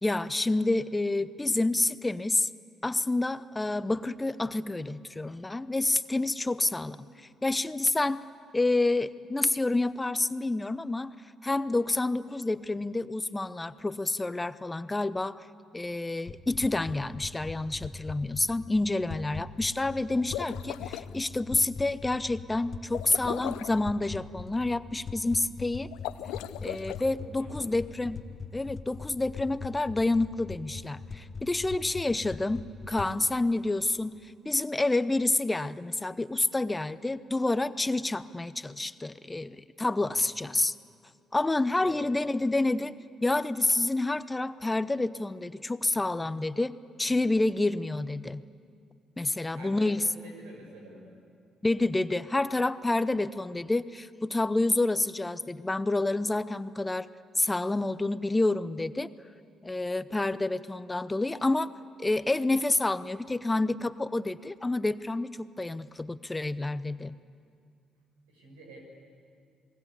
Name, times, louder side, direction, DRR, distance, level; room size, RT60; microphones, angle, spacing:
voice 1, 0.0-2.5 2.8-8.2 8.5-11.1 11.4-15.4 15.7-25.9 26.6-28.2 28.5-40.7 41.3-43.0 43.2-46.7 47.0-48.4 49.2-50.1 51.6-57.1 57.4-59.1 59.6-61.7 62.0-67.1, left 2 dB, 20° left, 14 dB, 0.8 m, -28 dB
sound 1, 16.3-33.1, left 5 dB, 50° left, 1.4 m, -42 dB
sound 2, 20.2-21.1 22.9-23.8 25.9-27.0, left 14 dB, 80° left, 0.6 m, -37 dB
voice 2, 27.0-27.8 39.9-40.2 41.8-42.0 49.5-51.0 68.3-68.8, right 2 dB, 90° right, 0 dB, 5.9 m, -48 dB
28.5 x 20.5 x 8.4 m, 2.3 s
hypercardioid pair, 55°, 0 cm